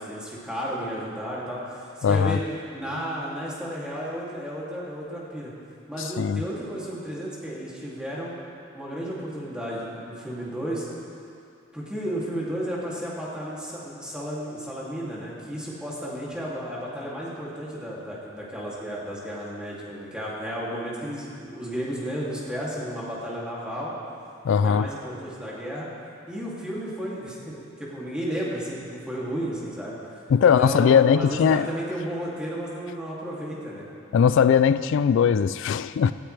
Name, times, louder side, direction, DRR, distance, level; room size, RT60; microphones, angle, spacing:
voice 1, 0.0-2.4 2.7-5.5 5.9-8.4 8.7-10.9 11.7-23.9 24.6-25.9 26.3-29.9 30.4-33.8, equal, 5° right, -7 dB, 2.6 m, -33 dB
voice 2, 2.0-2.4 6.0-6.4 24.4-24.9 30.3-31.7 34.1-36.1, left 7 dB, 60° left, 14 dB, 0.3 m, -20 dB
18.5 x 13.5 x 3.4 m, 2.5 s
head